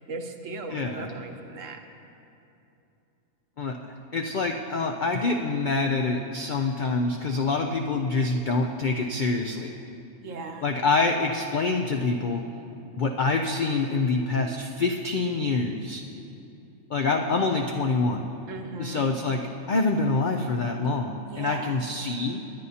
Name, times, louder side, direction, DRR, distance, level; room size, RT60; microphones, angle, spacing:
voice 1, 0.1-1.8 10.2-10.7 18.5-19.1 21.3-21.8, right 3 dB, 65° right, 5 dB, 1.1 m, -37 dB
voice 2, 0.7-1.1 3.6-3.8 4.1-9.7 10.6-12.4 12.9-16.0 16.9-18.3 18.8-19.4 19.7-22.4, left 3 dB, 75° left, 3 dB, 0.4 m, -26 dB
20.5 x 9.5 x 2.8 m, 2.8 s
omnidirectional pair, 1.5 m